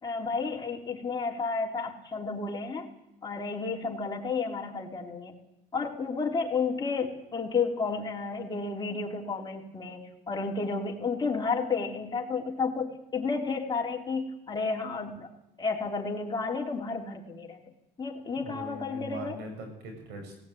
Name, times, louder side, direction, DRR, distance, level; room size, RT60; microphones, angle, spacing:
voice 1, 0.0-2.9 3.2-5.4 5.7-15.3 15.6-17.6 18.0-19.4, left 4 dB, 25° left, 0 dB, 3.6 m, -32 dB
voice 2, 18.4-20.4, right 1 dB, 90° right, 4 dB, 6.7 m, -41 dB
17.5 x 17.5 x 9.4 m, 0.88 s
cardioid pair, 110°, 17 cm